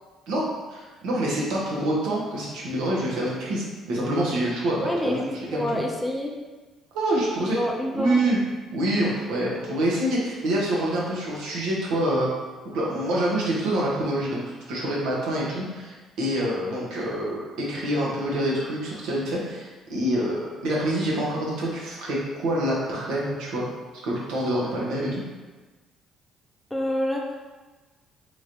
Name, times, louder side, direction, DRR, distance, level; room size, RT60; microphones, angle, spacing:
voice 1, 0.3-5.2 5.5-5.8 6.9-7.6 7.9-8.4 8.7-12.3 12.7-23.6 24.0-25.2, right 1 dB, 80° right, -4 dB, 0.9 m, -26 dB
voice 2, 4.8-6.3 7.4-8.2 26.7-27.4, left 1 dB, 5° left, -1 dB, 0.5 m, -28 dB
3.0 x 3.0 x 2.6 m, 1.3 s
supercardioid pair, 70°, 0 cm